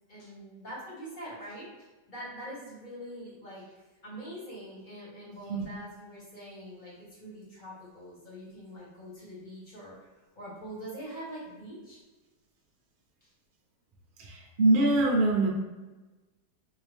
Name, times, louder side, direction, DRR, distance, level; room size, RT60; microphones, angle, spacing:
voice 1, 0.1-3.6 4.0-9.9 10.3-12.0 13.2-13.3, equal, 30° left, -6 dB, 1.4 m, -44 dB
voice 2, 14.2-15.5, right 2 dB, 50° right, -1 dB, 0.6 m, -24 dB
3.7 x 2.9 x 3.4 m, 1.2 s
omnidirectional pair, 1.9 m